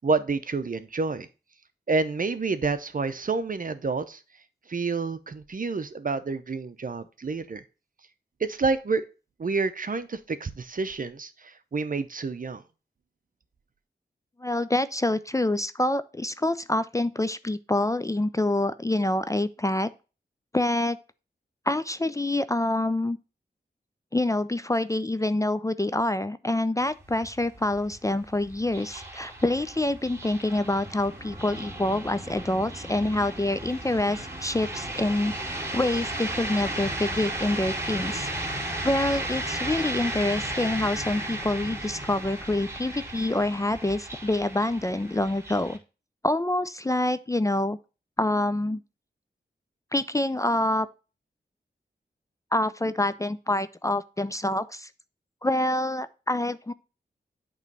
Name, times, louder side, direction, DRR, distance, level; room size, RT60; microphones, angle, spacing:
voice 1, 0.0-1.3 1.9-4.2 4.7-7.6 8.4-9.0 9.4-12.6, right 4 dB, 50° right, 12 dB, 0.7 m, -28 dB
voice 2, 14.4-19.9 20.5-21.0 21.7-23.2 24.1-38.3 38.8-45.8 46.2-47.8 48.2-48.8 49.9-50.9 52.5-54.9 55.4-56.7, left 1 dB, 15° left, 14 dB, 0.4 m, -26 dB
sound 1, 26.8-45.8, right 1 dB, 15° right, 2.5 m, -35 dB
8.1 x 3.1 x 5.4 m, 0.32 s
cardioid pair, 40°, 18 cm